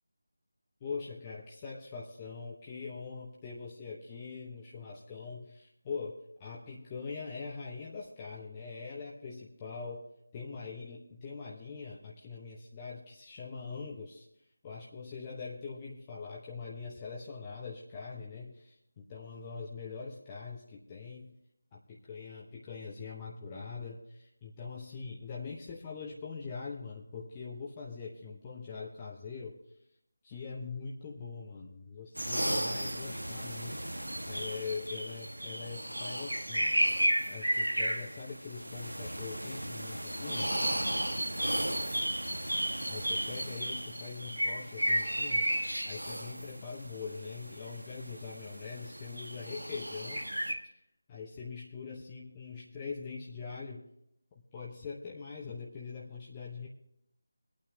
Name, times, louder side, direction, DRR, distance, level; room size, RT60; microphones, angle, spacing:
voice 1, 0.8-14.3 14.6-21.3 21.7-29.6 30.2-36.7 37.3-40.5 42.9-50.2 50.6-50.7 51.1-53.9 54.5-56.7, left 5 dB, 20° left, -3 dB, 0.9 m, -43 dB
sound 1, 32.1-50.5, right 1 dB, 80° right, 1.5 m, -33 dB
24.5 x 9.0 x 2.8 m, 0.75 s
figure-of-eight pair, 160°, 0 cm